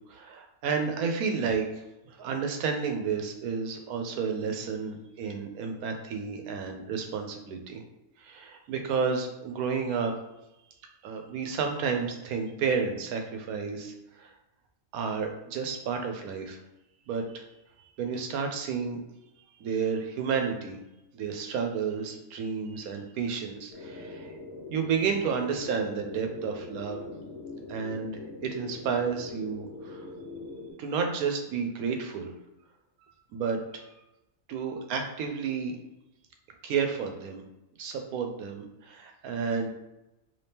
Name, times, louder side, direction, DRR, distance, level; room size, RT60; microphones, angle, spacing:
voice 1, 0.1-1.7 2.1-7.8 8.2-10.2 11.0-14.3 14.9-16.6 17.1-17.4 18.0-19.0 19.6-20.8 21.1-24.3 24.7-27.0 27.7-30.1 30.8-32.3 33.3-33.9 34.5-35.8 36.6-37.4 37.8-39.7, right 5 dB, 80° right, 4 dB, 1.1 m, -31 dB
sound 1, 23.7-30.7, left 3 dB, 80° left, 1.4 m, -42 dB
3.3 x 2.8 x 3.4 m, 0.92 s
omnidirectional pair, 1.5 m